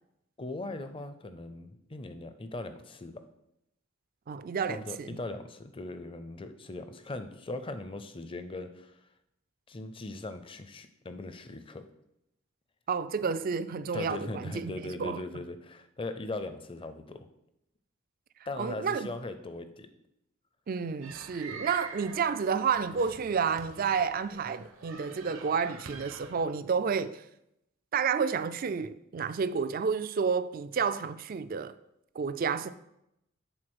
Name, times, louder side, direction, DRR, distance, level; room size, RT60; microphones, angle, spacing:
voice 1, 0.4-3.2 4.7-9.0 9.7-11.9 13.9-17.3 18.5-19.9, left 2 dB, 25° left, 0.5 m, -39 dB
voice 2, 4.3-5.2 12.9-15.2 18.6-19.1 20.7-27.2 27.9-31.7 32.2-32.7, right 6 dB, 45° right, 0.3 m, -30 dB
sound 1, 21.0-26.5, right 4 dB, 75° right, 0.9 m, -46 dB
7.8 x 4.0 x 6.1 m
head